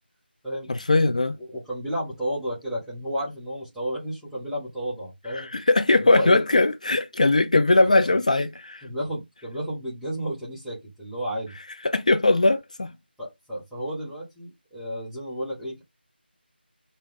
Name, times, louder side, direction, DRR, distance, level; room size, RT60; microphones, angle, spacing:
voice 1, 0.7-1.4 5.3-8.8 11.8-12.9, left 2 dB, 40° left, 0.5 m, -20 dB
voice 2, 1.4-5.5 6.0-6.4 8.8-11.5 13.2-15.8, equal, ahead, 0.7 m, -32 dB
5.1 x 2.2 x 3.6 m
figure-of-eight pair, 170°, 6 cm